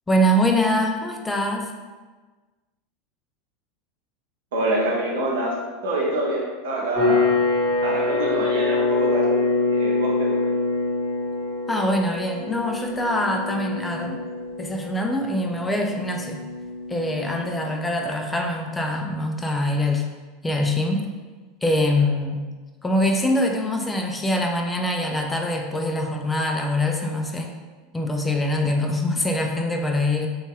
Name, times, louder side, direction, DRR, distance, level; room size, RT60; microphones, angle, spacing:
voice 1, 0.1-1.7 11.7-14.2 14.6-16.4 16.9-20.0 20.4-21.1 21.6-22.4 22.8-27.5 27.9-30.3, left 1 dB, 10° left, 2 dB, 0.4 m, -24 dB
voice 2, 4.5-5.6 5.8-7.3 7.8-9.4 9.7-10.4, right 1 dB, 70° right, -3 dB, 0.9 m, -26 dB
sound 1, 6.9-18.0, left 3 dB, 5° right, 1.5 m, -25 dB
3.0 x 2.6 x 3.5 m, 1.3 s
figure-of-eight pair, 80°, 0 cm